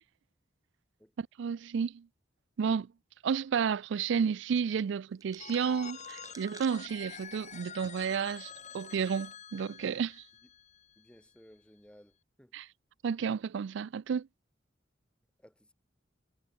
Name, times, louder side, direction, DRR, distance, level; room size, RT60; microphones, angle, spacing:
voice 1, 1.2-2.1 2.6-2.9 3.2-10.2 12.5-12.6 13.0-14.3, right 6 dB, 70° right, 0.4 m, -31 dB
sound 1, 5.2-8.2 8.6-8.7 9.5-9.9, right 4 dB, 20° right, 0.7 m, -54 dB
Telephone, 5.4-11.2, left 7 dB, 40° left, 1.8 m, -47 dB
voice 2, 11.0-12.6 15.4-15.7, equal, 5° left, 5.8 m, -58 dB
head